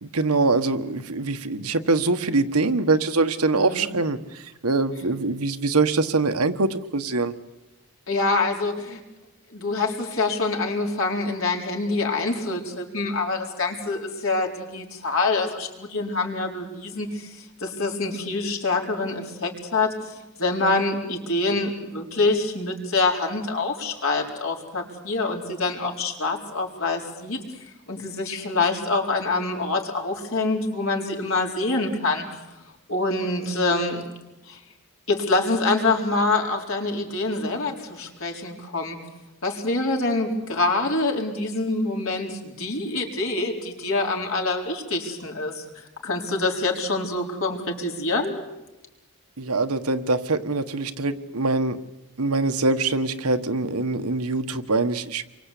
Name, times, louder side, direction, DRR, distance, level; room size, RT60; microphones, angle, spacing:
voice 1, 0.0-7.3 49.4-51.8 52.2-55.2, right 3 dB, 85° right, 8 dB, 1.4 m, -23 dB
voice 2, 3.5-3.9 8.1-9.0 9.5-27.4 27.9-32.2 32.9-34.0 34.5-34.6 35.1-39.0 39.4-48.4, left 3 dB, 65° left, 1 dB, 4.4 m, -26 dB
28.5 x 24.0 x 8.5 m, 1.0 s
head